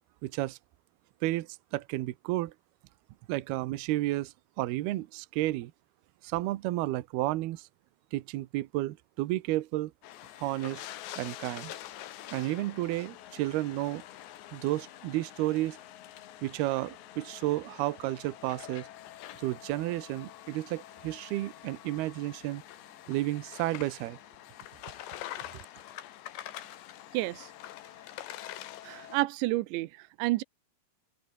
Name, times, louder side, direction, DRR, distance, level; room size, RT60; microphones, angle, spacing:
voice 1, 0.2-0.6 1.2-2.5 3.3-5.7 6.2-7.7 8.1-9.9 10.4-10.8 11.2-11.7 12.3-14.0 14.5-15.8 16.4-18.9 19.4-22.6 23.1-24.2, right 17 dB, 70° right, 2.8 m, -32 dB
sound 1, 10.0-29.2, left 13 dB, 85° left, 3.8 m, -46 dB
voice 2, 27.1-27.5 28.8-30.4, right 19 dB, 90° right, 3.1 m, -30 dB
open air
omnidirectional pair, 5.0 m